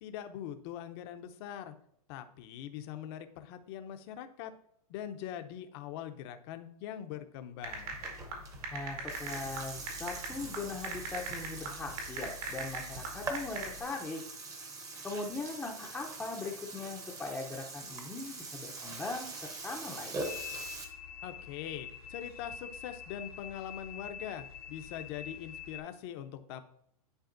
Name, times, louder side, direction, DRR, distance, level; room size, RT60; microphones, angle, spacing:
voice 1, 0.0-1.7 2.1-4.5 4.9-7.9 21.2-26.6, left 10 dB, 40° left, 8 dB, 0.7 m, -42 dB
sound 1, 7.6-13.8, right 3 dB, 70° right, 2.2 m, -41 dB
Burping eructation, 7.7-20.8, right 3 dB, 15° right, 0.9 m, -43 dB
voice 2, 8.7-14.2 15.0-19.3 19.6-20.2, left 3 dB, 5° left, -2 dB, 0.7 m, -40 dB
sound 2, 20.2-25.8, left 8 dB, 90° left, 2.3 m, -45 dB
10.5 x 4.0 x 2.6 m, 0.73 s
hypercardioid pair, 145°, 19 cm